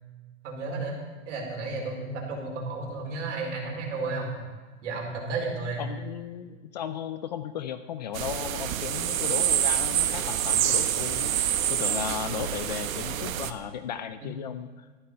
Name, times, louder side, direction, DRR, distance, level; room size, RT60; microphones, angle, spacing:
voice 1, 0.4-0.9 1.2-4.4 4.8-5.9 14.2-14.3, right 3 dB, 65° right, 0 dB, 4.9 m, -32 dB
voice 2, 5.8-11.3 11.7-14.9, left 9 dB, 35° left, 11 dB, 0.4 m, -35 dB
sound 1, 8.1-13.5, right 10 dB, 85° right, 1.2 m, -27 dB
14.0 x 12.0 x 5.6 m, 1.3 s
supercardioid pair, 170°, 39 cm